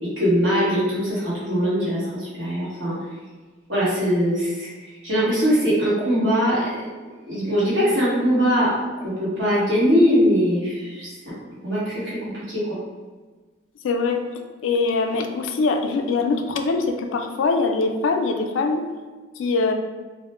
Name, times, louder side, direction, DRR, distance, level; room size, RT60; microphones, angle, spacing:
voice 1, 0.0-3.0 3.7-6.7 7.2-8.7 9.0-11.1 11.6-12.8, equal, 75° right, -9 dB, 1.2 m, -21 dB
voice 2, 13.8-14.2 14.6-18.8 19.4-19.7, left 3 dB, 85° left, 5 dB, 0.3 m, -22 dB
2.4 x 2.0 x 3.0 m, 1.4 s
head